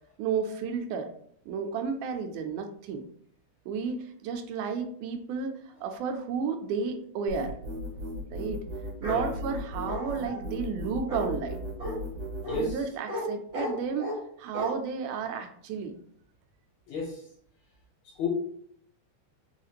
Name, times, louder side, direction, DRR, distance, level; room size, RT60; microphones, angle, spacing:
voice 1, 0.2-1.1 1.5-3.1 3.7-7.5 8.3-8.6 9.0-11.7 12.5-15.9, right 5 dB, 85° right, 6 dB, 2.1 m, -32 dB
sound 1, 7.3-12.7, left 1 dB, 65° right, 2.2 m, -36 dB
Bark, 9.0-9.2 9.8-10.4 11.1-11.3 11.8-12.0 12.4-12.6 13.1-13.2 13.5-14.2 14.5-14.7, equal, 45° right, 0.8 m, -34 dB
voice 2, 12.4-12.8 16.9-17.2 18.0-18.3, left 6 dB, 75° left, 0 dB, 1.6 m, -33 dB
5.7 x 2.4 x 2.8 m, 0.65 s
omnidirectional pair, 3.6 m